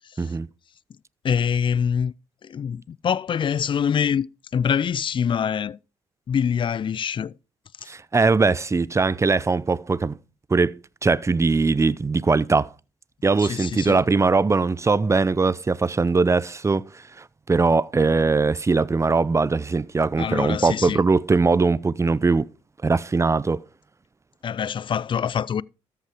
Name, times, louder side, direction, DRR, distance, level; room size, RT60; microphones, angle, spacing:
voice 1, 1.2-2.1 2.4-4.3 4.5-5.8 6.3-7.3 13.4-14.0 20.2-21.0 24.4-25.6, left 7 dB, 40° left, 0.4 m, -24 dB
voice 2, 7.9-10.2 10.5-10.7 11.0-12.7 13.2-16.9 17.5-22.5 22.8-23.6, right 4 dB, 25° right, 0.6 m, -21 dB
13.5 x 5.7 x 5.0 m
supercardioid pair, 55°, 13 cm